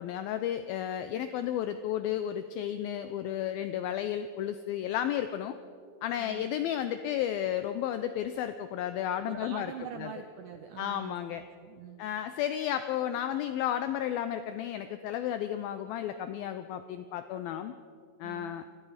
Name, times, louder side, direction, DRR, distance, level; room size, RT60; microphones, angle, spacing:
voice 1, 0.0-5.6 6.0-9.7 10.0-10.1 10.8-11.4 12.0-17.7 18.2-18.6, left 10 dB, 85° left, 10 dB, 2.1 m, -33 dB
voice 2, 6.2-6.5 9.3-12.0 18.2-18.6, right 8 dB, 80° right, 6 dB, 1.9 m, -44 dB
29.0 x 20.5 x 5.0 m, 2.5 s
omnidirectional pair, 5.0 m